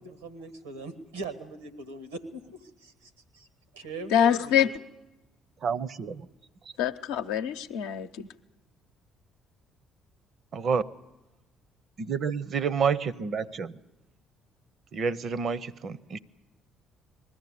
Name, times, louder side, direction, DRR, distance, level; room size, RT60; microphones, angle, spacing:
voice 1, 0.0-3.5 3.7-4.7, right 3 dB, 90° right, 12 dB, 1.4 m, -40 dB
voice 2, 4.1-4.7 6.8-8.3, left 9 dB, 75° left, 7 dB, 0.7 m, -25 dB
voice 3, 5.6-6.3 10.5-10.8 12.0-13.7 14.9-16.2, right 6 dB, 50° right, 18 dB, 0.7 m, -29 dB
20.5 x 14.0 x 9.8 m, 1.0 s
hypercardioid pair, 50°, 0 cm